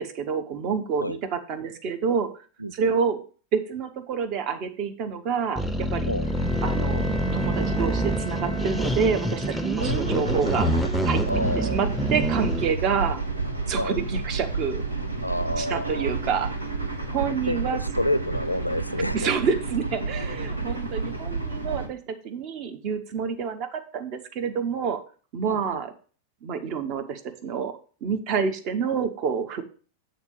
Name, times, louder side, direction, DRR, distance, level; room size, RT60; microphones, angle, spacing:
voice 1, 0.0-2.3 2.7-3.2 3.5-6.1 6.6-7.0 7.3-10.7 11.0-11.2 11.6-13.2 13.7-14.8 15.6-16.5 17.1-17.8 19.1-25.0 25.3-25.9 26.4-27.7 28.0-29.6, right 6 dB, 40° right, 7 dB, 1.0 m, -28 dB
sound 1, 5.6-12.7, right 1 dB, ahead, 0.6 m, -26 dB
Bowed string instrument, 6.2-10.1, left 1 dB, 65° right, 2.7 m, -39 dB
sound 2, 9.8-21.9, right 3 dB, 80° right, 1.0 m, -30 dB
voice 2, 11.3-11.8 13.8-14.0 15.2-16.1 17.5-17.6 18.0-19.3 25.5-25.8, left 1 dB, 90° left, 15 dB, 0.4 m, -28 dB
7.2 x 3.9 x 6.5 m, 0.39 s
figure-of-eight pair, 90°, 0 cm